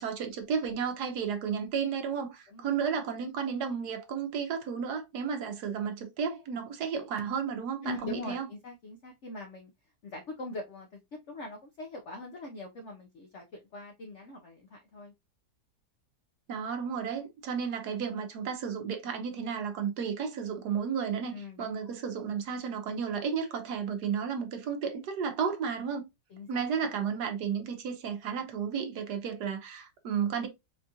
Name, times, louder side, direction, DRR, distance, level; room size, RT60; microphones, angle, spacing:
voice 1, 0.0-8.5 16.5-26.1 26.5-30.5, right 6 dB, 70° right, 1.2 m, -33 dB
voice 2, 7.8-9.7 10.0-11.0 11.3-15.1 21.3-21.9 26.3-26.7, left 2 dB, 70° left, 0.6 m, -42 dB
4.4 x 2.4 x 2.7 m
omnidirectional pair, 1.9 m